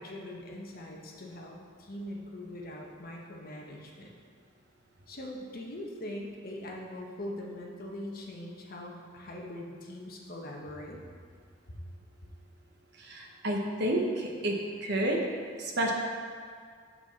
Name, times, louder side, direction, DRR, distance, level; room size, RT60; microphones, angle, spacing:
voice 1, 0.0-4.2 5.1-11.0 11.7-11.8, left 1 dB, 45° left, -1 dB, 1.0 m, -42 dB
voice 2, 13.0-14.5 14.8-15.2 15.6-15.9, right 1 dB, 55° right, 0 dB, 1.0 m, -30 dB
6.6 x 6.0 x 4.1 m, 2.1 s
head